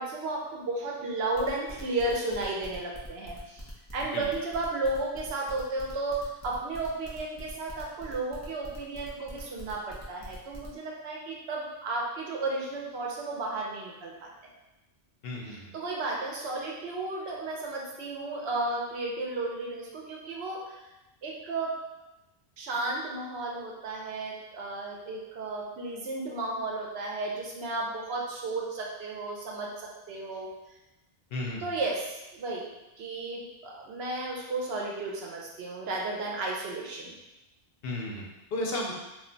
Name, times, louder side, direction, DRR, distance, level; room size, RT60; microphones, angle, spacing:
voice 1, 0.0-3.6 3.9-14.3 15.4-20.8 21.2-21.8 22.6-30.5 31.6-32.7 33.0-37.1, right 2 dB, 75° right, -2 dB, 0.9 m, -33 dB
sound 1, 1.3-10.7, equal, 20° left, 0.6 m, -46 dB
voice 2, 15.2-15.7 31.3-31.6 37.8-38.9, left 1 dB, 70° left, -2 dB, 0.8 m, -34 dB
2.4 x 2.2 x 3.8 m, 0.99 s
omnidirectional pair, 1.1 m